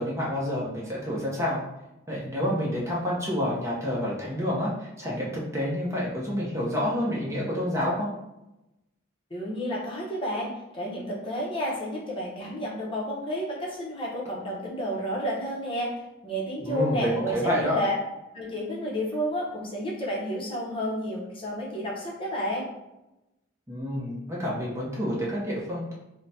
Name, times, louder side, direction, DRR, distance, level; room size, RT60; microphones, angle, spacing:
voice 1, 0.0-1.6 2.1-8.1 16.6-17.8 23.7-25.9, equal, 15° right, -5 dB, 0.7 m, -28 dB
voice 2, 9.3-15.9 16.2-17.9 18.3-22.7, equal, 25° left, -4 dB, 0.9 m, -31 dB
3.8 x 2.2 x 4.1 m, 0.93 s
head